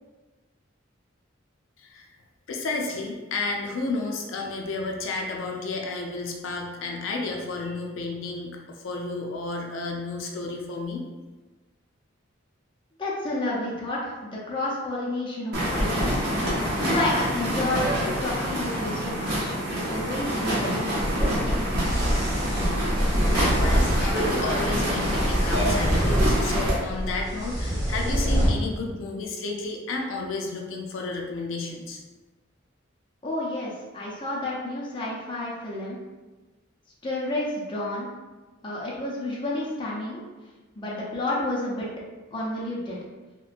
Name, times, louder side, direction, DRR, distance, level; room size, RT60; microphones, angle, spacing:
voice 1, 2.5-11.1 23.3-32.0, left 3 dB, 75° left, 1 dB, 0.4 m, -32 dB
voice 2, 13.0-16.3 16.8-21.8 33.2-36.0 37.0-38.1 38.6-40.2 40.7-41.9 42.3-43.0, left 1 dB, 25° left, -6 dB, 0.6 m, -31 dB
sound 1, 15.5-26.8, equal, 55° right, 0.9 m, -27 dB
sound 2, 21.0-28.5, equal, 15° right, 0.8 m, -25 dB
3.0 x 2.9 x 2.4 m, 1.2 s
head